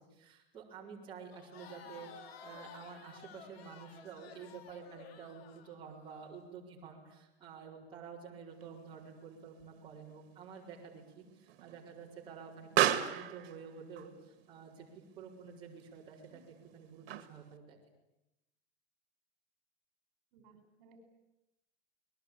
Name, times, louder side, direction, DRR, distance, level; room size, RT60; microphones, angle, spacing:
voice 1, 0.0-16.4 16.7-17.8, right 6 dB, 15° right, -4 dB, 4.5 m, -50 dB
Crowd, 1.3-6.3, left 6 dB, 75° left, 3.1 m, -54 dB
Explosion, 8.6-17.6, right 12 dB, 70° right, 2.3 m, -38 dB
voice 2, 20.3-21.0, right 4 dB, 45° right, 7 dB, 5.1 m, -61 dB
27.5 x 21.0 x 8.8 m, 0.92 s
supercardioid pair, 165°, 31 cm